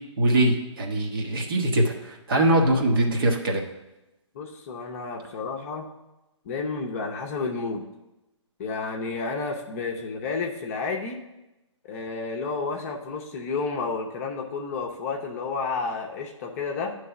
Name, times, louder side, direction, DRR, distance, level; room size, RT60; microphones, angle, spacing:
voice 1, 0.2-3.6, right 1 dB, 45° right, 2 dB, 1.2 m, -22 dB
voice 2, 4.3-5.9 6.4-7.9 8.6-11.2 11.9-17.0, left 4 dB, 30° left, 0 dB, 0.8 m, -31 dB
9.4 x 3.3 x 6.8 m, 0.98 s
figure-of-eight pair, 135°, 16 cm